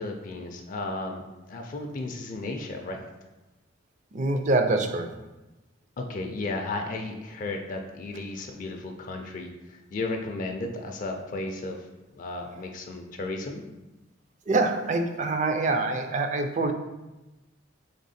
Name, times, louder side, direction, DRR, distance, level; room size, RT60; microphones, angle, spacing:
voice 1, 0.0-3.0 6.0-11.9 12.1-13.6, left 2 dB, 40° left, 3 dB, 0.4 m, -34 dB
voice 2, 4.1-5.1 14.5-16.7, right 2 dB, 40° right, 6 dB, 0.4 m, -25 dB
3.6 x 3.4 x 4.1 m, 1.0 s
head